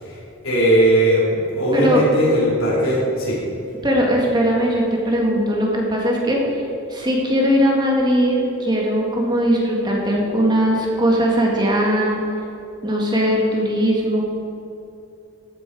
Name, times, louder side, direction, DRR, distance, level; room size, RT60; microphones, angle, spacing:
voice 1, 0.0-3.4, right 1 dB, 75° left, -7 dB, 3.3 m, -19 dB
voice 2, 1.7-2.0 3.8-6.4 6.9-12.2 12.8-14.2, equal, 20° right, -2 dB, 1.9 m, -19 dB
14.0 x 9.7 x 4.7 m, 2.8 s
head